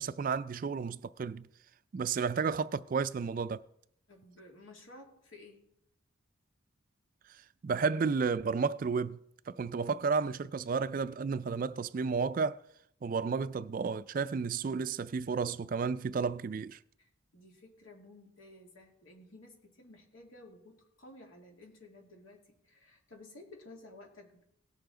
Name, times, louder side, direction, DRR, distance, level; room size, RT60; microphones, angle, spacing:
voice 1, 0.0-1.5 1.9-3.6 7.6-9.2 9.5-12.6 13.0-16.8, right 5 dB, 45° right, 0.3 m, -32 dB
voice 2, 4.1-5.6 17.0-24.4, left 2 dB, 85° left, 2.5 m, -54 dB
18.0 x 6.9 x 3.8 m
head